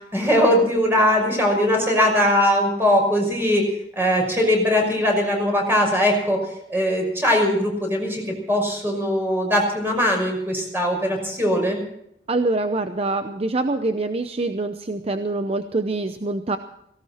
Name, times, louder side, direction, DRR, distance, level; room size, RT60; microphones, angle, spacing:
voice 1, 0.1-3.6 4.0-6.4 6.7-11.8, equal, 15° right, 1 dB, 5.8 m, -20 dB
voice 2, 12.3-16.6, right 2 dB, 35° right, 8 dB, 0.7 m, -25 dB
18.0 x 17.5 x 4.3 m, 0.75 s
head